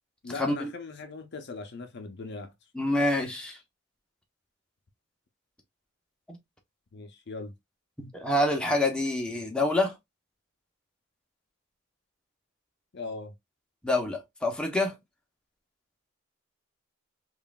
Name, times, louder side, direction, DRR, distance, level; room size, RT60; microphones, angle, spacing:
voice 1, 0.2-2.5 6.9-7.5 12.9-13.3, left 3 dB, 55° left, 0.6 m, -39 dB
voice 2, 2.7-3.6 6.3-6.4 8.0-9.9 13.8-14.9, left 1 dB, 5° left, 0.8 m, -27 dB
5.4 x 2.5 x 2.3 m
head